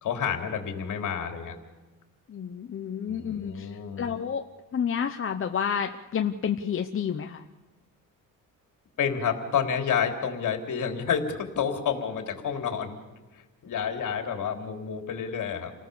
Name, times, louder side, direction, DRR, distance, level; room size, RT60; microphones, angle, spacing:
voice 1, 0.0-1.6 3.1-4.1 9.0-13.0 13.6-15.7, left 7 dB, 60° left, 4 dB, 3.6 m, -29 dB
voice 2, 2.3-3.7 4.0-4.4 4.7-7.4, left 7 dB, 40° left, 5 dB, 1.0 m, -30 dB
29.5 x 19.0 x 7.1 m, 1.2 s
cardioid pair, 135°, 34 cm